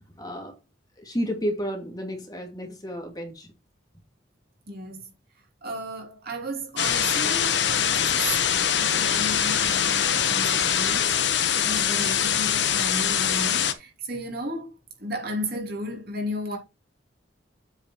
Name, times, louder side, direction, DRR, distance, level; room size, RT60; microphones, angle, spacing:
voice 1, 0.2-0.5 1.0-3.5, equal, 20° left, 2.2 m, -31 dB
voice 2, 4.7-5.0 5.6-8.4 8.7-14.7 15.0-16.6, equal, 50° right, 3.0 m, -34 dB
sound 1, 6.8-13.7, left 8 dB, 65° left, 1.1 m, -23 dB
8.2 x 5.1 x 4.6 m
head